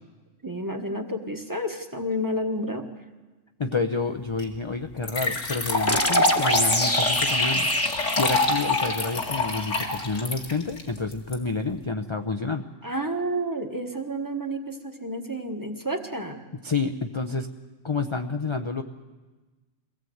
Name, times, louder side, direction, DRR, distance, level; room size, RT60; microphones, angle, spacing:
voice 1, 0.4-2.9 12.8-16.4, equal, 15° right, 5 dB, 1.5 m, -30 dB
voice 2, 3.6-12.9 16.6-17.5 17.8-18.8, left 4 dB, 30° left, 6 dB, 0.7 m, -29 dB
sound 1, 4.4-4.5 5.0-11.3, left 2 dB, 80° left, 2.4 m, -26 dB
sound 2, 5.9-9.4, left 1 dB, 10° left, 1.2 m, -26 dB
23.5 x 17.0 x 7.9 m, 1.2 s
omnidirectional pair, 1.3 m